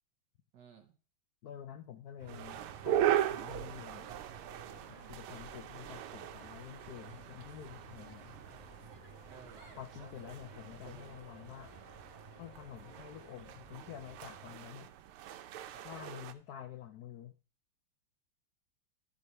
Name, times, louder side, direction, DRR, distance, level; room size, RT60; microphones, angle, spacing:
voice 1, 0.5-0.9 9.3-9.7 10.7-11.2 15.7-15.9, right 6 dB, 60° right, 7 dB, 1.7 m, -56 dB
voice 2, 1.4-4.2 4.9-8.4 9.8-11.7 12.4-14.9 15.8-17.4, left 10 dB, 75° left, 9 dB, 0.9 m, -49 dB
sound 1, 2.2-14.5, right 3 dB, 35° right, 1.8 m, -54 dB
sound 2, 2.3-16.3, right 12 dB, 80° right, 1.6 m, -39 dB
11.0 x 4.8 x 5.4 m, 0.36 s
omnidirectional pair, 2.4 m